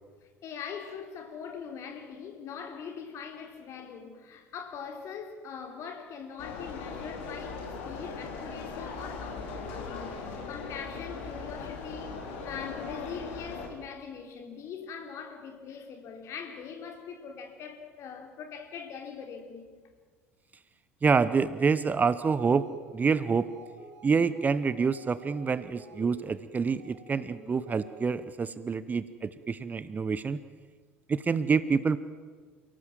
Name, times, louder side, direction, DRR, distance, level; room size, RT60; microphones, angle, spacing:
voice 1, 0.2-12.2 12.4-19.7, left 6 dB, 45° left, 4.0 m, -42 dB
sound 1, 6.4-13.7, left 4 dB, 60° left, 4.0 m, -39 dB
voice 2, 21.0-22.6 22.9-23.5 24.0-30.4 31.1-32.0, right 5 dB, 25° right, 0.9 m, -27 dB
sound 2, 22.5-28.3, right 2 dB, 55° right, 5.8 m, -51 dB
29.5 x 18.0 x 7.6 m
figure-of-eight pair, 65°, 7 cm